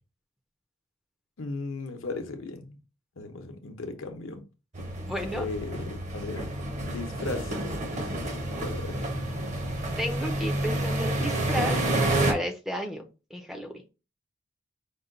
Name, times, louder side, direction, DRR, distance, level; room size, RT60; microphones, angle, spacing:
voice 1, 1.4-2.8 3.2-4.4 5.3-6.5 6.8-9.0, left 3 dB, 70° left, 6 dB, 0.8 m, -37 dB
sound 1, 4.7-12.3, right 1 dB, 35° right, 0.8 m, -29 dB
voice 2, 5.0-5.5 10.0-11.9 12.3-13.7, equal, ahead, 5 dB, 0.5 m, -33 dB
5.4 x 2.2 x 3.8 m, 0.31 s
head